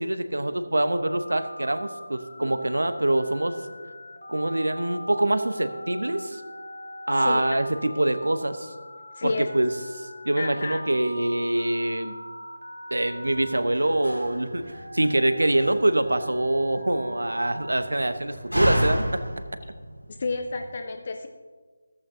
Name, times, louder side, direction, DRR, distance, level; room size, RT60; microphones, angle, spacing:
voice 1, 0.0-3.6 4.3-6.4 7.1-8.7 9.2-12.2 12.9-19.2, right 1 dB, 70° right, 10 dB, 1.0 m, -25 dB
Telephone, 1.1-17.8, equal, 75° left, 1.9 m, -42 dB
voice 2, 9.1-9.5 10.4-10.8 20.1-21.3, left 3 dB, 35° left, 6 dB, 0.6 m, -31 dB
Slam, 13.1-20.7, equal, 90° right, 2.6 m, -32 dB
15.0 x 14.5 x 2.8 m, 1.5 s
figure-of-eight pair, 160°, 0 cm